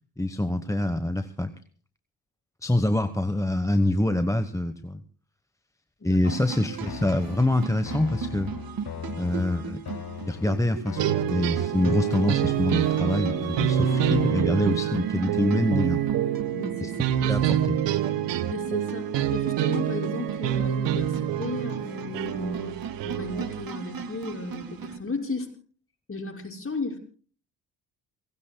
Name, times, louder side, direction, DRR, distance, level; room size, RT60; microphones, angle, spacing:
voice 1, 0.2-1.5 2.6-5.0 6.0-8.5 9.1-9.8 10.2-16.0 16.8-16.9 17.2-17.8, left 1 dB, 5° left, 10 dB, 1.1 m, -25 dB
voice 2, 6.0-6.4 16.5-17.1 18.5-25.5 26.1-27.0, left 3 dB, 30° left, 0 dB, 6.3 m, -35 dB
sound 1, 6.2-25.0, right 5 dB, 50° right, 2.2 m, -35 dB
sound 2, 6.8-14.8, left 9 dB, 55° left, 1.7 m, -40 dB
sound 3, 11.0-23.7, right 11 dB, 70° right, 1.2 m, -27 dB
29.0 x 16.5 x 2.3 m, 0.43 s
hypercardioid pair, 50°, 44 cm